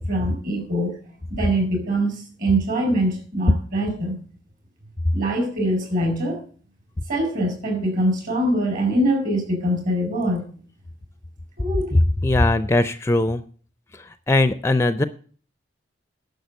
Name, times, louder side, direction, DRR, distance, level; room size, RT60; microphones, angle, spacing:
voice 1, 0.1-0.9 1.3-2.1 2.4-4.2 5.1-6.4 7.1-10.5 11.6-11.9, right 1 dB, 45° right, 4 dB, 4.9 m, -23 dB
voice 2, 11.9-13.4 14.3-15.0, left 2 dB, 15° left, 12 dB, 0.4 m, -19 dB
11.0 x 6.6 x 7.8 m, 0.44 s
head